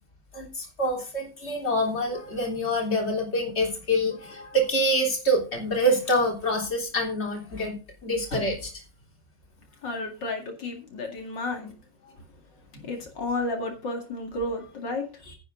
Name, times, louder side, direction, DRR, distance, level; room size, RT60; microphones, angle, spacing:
voice 1, 0.3-8.8 12.7-12.9 15.3-15.4, equal, 35° left, 1 dB, 3.7 m, -26 dB
voice 2, 9.8-11.7 12.0-12.1 12.8-15.2, left 2 dB, 85° left, 2 dB, 2.9 m, -32 dB
10.0 x 9.0 x 5.2 m, 0.33 s
omnidirectional pair, 1.9 m